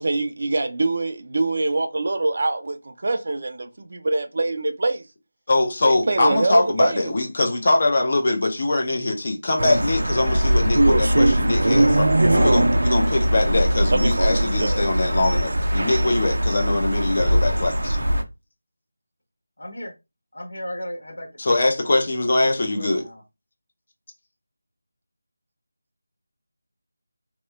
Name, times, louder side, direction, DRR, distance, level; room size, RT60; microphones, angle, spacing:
voice 1, 0.0-5.0 5.8-7.1 13.9-14.2 14.5-14.8, right 2 dB, 40° right, 0.5 m, -24 dB
voice 2, 5.5-12.1 12.3-18.0 21.4-23.0, left 2 dB, 35° left, 0.5 m, -22 dB
sound 1, 9.6-18.2, right 1 dB, 85° right, 0.6 m, -20 dB
voice 3, 19.6-19.9 20.3-21.6 22.0-23.2, equal, 75° left, 1.4 m, -36 dB
2.9 x 2.2 x 3.2 m
figure-of-eight pair, 175°, 0 cm